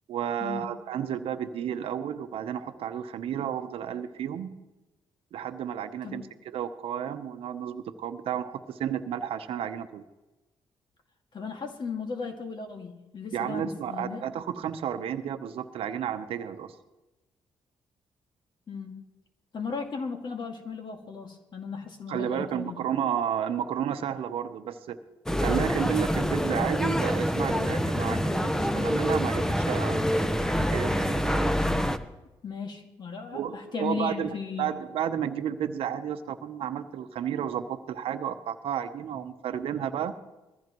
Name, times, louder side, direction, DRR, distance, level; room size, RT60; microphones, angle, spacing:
voice 1, 0.1-4.5 5.3-10.0 13.3-16.7 22.1-25.0 25.4-30.0 30.6-31.5 33.3-40.1, right 9 dB, 75° right, 9 dB, 0.9 m, -32 dB
voice 2, 11.3-14.3 18.7-19.0 19.5-22.8 32.4-34.7, left 5 dB, 50° left, 3 dB, 2.1 m, -36 dB
sound 1, 25.3-32.0, equal, 5° left, 1.0 m, -26 dB
21.0 x 15.0 x 3.1 m, 1.1 s
supercardioid pair, 65°, 10 cm